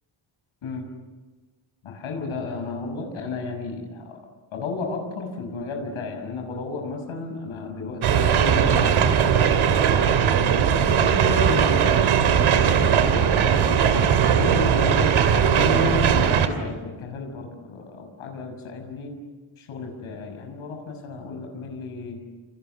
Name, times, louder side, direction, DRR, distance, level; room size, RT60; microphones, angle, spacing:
voice 1, 1.8-4.2 4.5-9.1 10.2-19.2 19.6-22.2, left 4 dB, 80° left, 4 dB, 6.2 m, -33 dB
sound 1, 8.0-16.5, right 8 dB, 75° right, 2.9 m, -19 dB
29.0 x 29.0 x 6.9 m, 1.3 s
wide cardioid pair, 170°, 48 cm